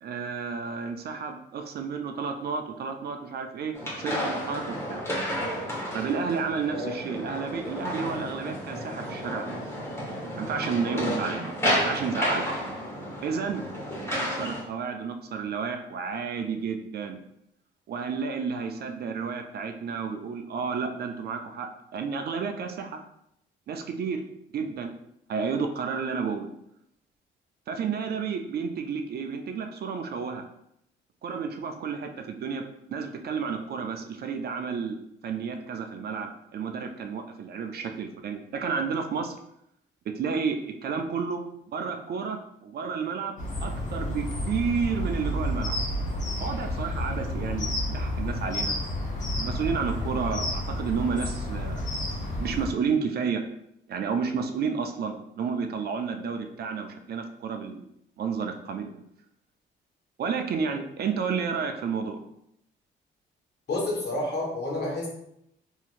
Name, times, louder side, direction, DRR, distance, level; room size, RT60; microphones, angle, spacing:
voice 1, 0.0-5.0 5.9-9.6 10.3-11.5 11.8-12.5 13.2-13.6 14.1-17.2 17.9-23.0 23.7-24.2 24.5-24.9 25.3-26.5 27.7-30.4 31.2-39.4 40.1-41.4 41.7-45.7 46.4-48.8 49.4-51.9 52.4-53.4 53.9-57.8 58.2-59.0 60.2-62.2, right 5 dB, 55° right, 5 dB, 0.4 m, -31 dB
sound 1, 3.7-14.6, equal, 15° left, 1.1 m, -31 dB
sound 2, 43.4-52.7, left 1 dB, 40° left, 1.0 m, -30 dB
voice 2, 63.7-65.1, left 2 dB, 60° left, -3 dB, 1.3 m, -30 dB
2.9 x 2.8 x 2.4 m, 0.76 s
cardioid pair, 90°, 20 cm